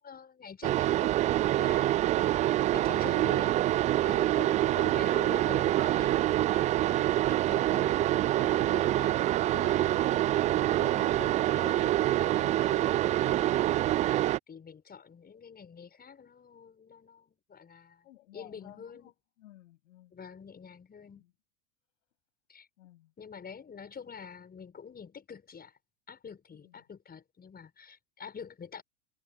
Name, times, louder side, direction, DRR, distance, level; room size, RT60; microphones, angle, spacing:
voice 1, 0.0-3.6 4.0-9.2 9.5-13.7 14.0-18.1 18.3-19.1 20.1-21.2 22.5-22.7 23.2-25.8 26.1-28.8, left 6 dB, 20° left, 6.5 m, -47 dB
sound 1, 0.6-14.4, right 14 dB, 20° right, 0.4 m, -26 dB
voice 2, 9.8-10.4 10.9-11.4 18.0-20.2 21.1-21.3 22.8-23.1 26.6-26.8, left 15 dB, 60° left, 7.6 m, -56 dB
figure-of-eight pair, 85°, 43 cm